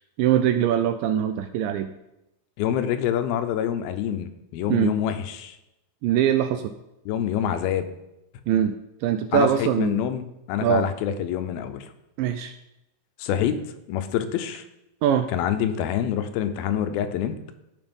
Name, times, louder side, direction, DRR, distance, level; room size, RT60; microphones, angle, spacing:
voice 1, 0.2-1.9 4.7-5.0 6.0-6.7 8.5-8.8 9.0-10.0 10.6-10.9 12.2-12.5 15.0-15.3, right 10 dB, 85° right, 9 dB, 2.0 m, -22 dB
voice 2, 2.6-5.6 7.1-7.9 9.3-11.9 13.2-13.6 13.9-14.6 15.3-17.5, left 10 dB, 85° left, 9 dB, 2.6 m, -26 dB
13.5 x 5.0 x 5.3 m, 0.90 s
omnidirectional pair, 4.3 m